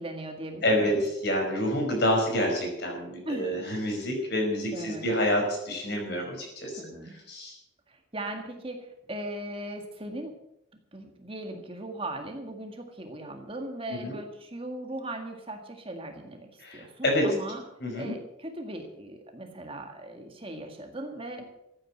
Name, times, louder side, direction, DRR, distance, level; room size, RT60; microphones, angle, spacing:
voice 1, 0.0-1.0 3.3-3.6 4.7-5.1 6.8-7.2 7.9-10.3 10.9-17.6 17.9-21.4, right 1 dB, 25° right, 4 dB, 1.8 m, -38 dB
voice 2, 0.6-6.8 7.3-7.6 13.9-14.1 16.6-17.3 17.8-18.1, equal, 55° left, 2 dB, 5.3 m, -28 dB
14.5 x 9.1 x 7.7 m, 0.83 s
head